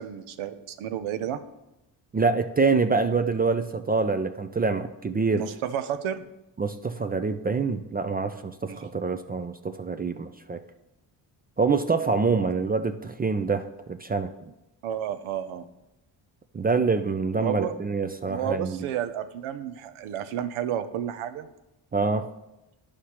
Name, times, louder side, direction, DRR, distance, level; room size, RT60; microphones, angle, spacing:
voice 1, 0.0-1.4 5.4-6.3 8.7-8.9 14.8-15.6 17.4-17.7 18.3-21.5, right 10 dB, 90° right, 10 dB, 0.6 m, -31 dB
voice 2, 2.1-5.4 6.6-10.6 11.6-14.5 16.5-18.8 21.9-22.3, right 4 dB, 20° right, 8 dB, 0.3 m, -26 dB
11.5 x 5.0 x 2.9 m, 0.94 s
cardioid pair, 70°, 48 cm